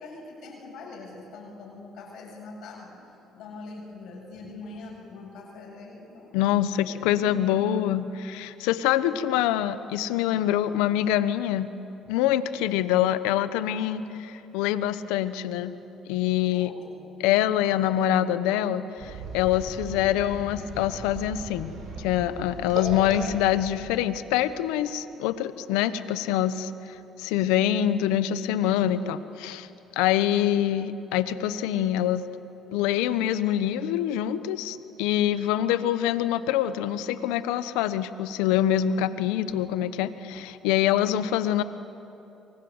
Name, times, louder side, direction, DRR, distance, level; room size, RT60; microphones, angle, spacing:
voice 1, 0.0-2.9 3.3-6.3 6.7-7.6 9.0-9.3 12.7-12.9 16.5-17.0 19.7-20.0, left 3 dB, 70° left, -3 dB, 7.7 m, -43 dB
voice 2, 6.3-11.7 12.1-15.8 16.1-16.7 17.2-21.7 22.0-29.7 30.0-32.2 32.7-41.6, left 11 dB, 90° left, 13 dB, 1.0 m, -25 dB
sound 1, 19.0-24.8, right 3 dB, 70° right, 7.4 m, -38 dB
28.5 x 24.0 x 8.1 m, 2.9 s
supercardioid pair, 80°, 0 cm